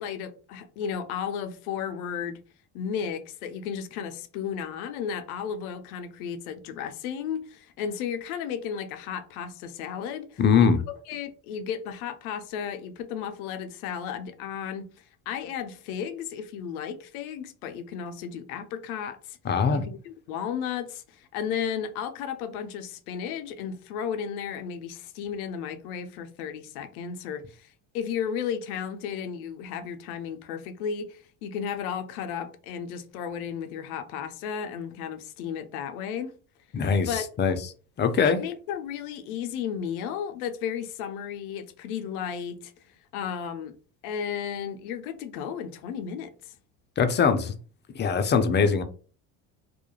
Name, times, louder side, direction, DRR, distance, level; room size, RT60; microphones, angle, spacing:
voice 1, 0.0-2.4 2.7-14.9 15.3-19.4 19.7-27.7 27.9-36.3 37.1-37.3 38.2-42.7 43.1-43.8 44.0-46.5, left 7 dB, 85° left, 0.6 m, -34 dB
voice 2, 10.4-10.8 19.5-19.8 36.7-37.6 38.0-38.4 47.0-47.5 48.0-48.8, left 6 dB, 25° left, 0.4 m, -22 dB
2.3 x 2.1 x 2.9 m
hypercardioid pair, 75°, 42 cm